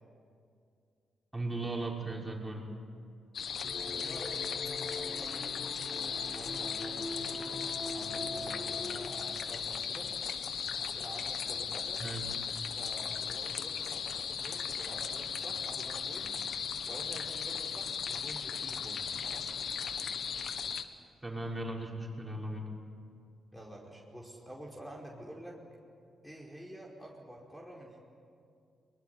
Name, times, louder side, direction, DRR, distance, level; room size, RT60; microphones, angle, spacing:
voice 1, 1.3-2.7 12.0-12.3 21.2-22.7, right 2 dB, 15° right, -2 dB, 6.0 m, -37 dB
sound 1, 3.3-20.8, left 7 dB, 65° left, 1.3 m, -37 dB
sound 2, 3.6-9.1, left 2 dB, 40° left, 3.9 m, -42 dB
voice 2, 3.7-5.5 5.9-10.1 10.8-12.0 12.7-16.3 16.9-19.5 23.5-25.6 26.2-28.0, right 1 dB, 5° left, -2 dB, 5.1 m, -48 dB
22.5 x 21.5 x 10.0 m, 2.3 s
supercardioid pair, 50°, 0 cm